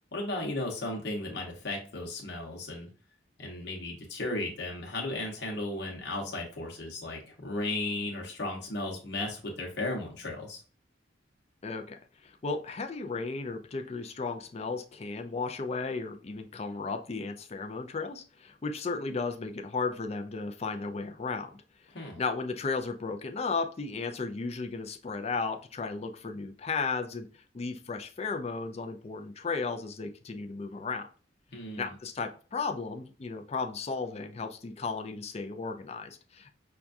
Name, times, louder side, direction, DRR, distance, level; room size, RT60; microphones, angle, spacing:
voice 1, 0.1-2.9 3.4-10.6 21.9-22.2 31.5-31.9, left 2 dB, 60° left, 0 dB, 1.0 m, -35 dB
voice 2, 11.6-21.6 22.2-31.1 31.8-36.5, left 4 dB, 35° left, 5 dB, 0.4 m, -35 dB
5.8 x 2.3 x 2.5 m, 0.38 s
head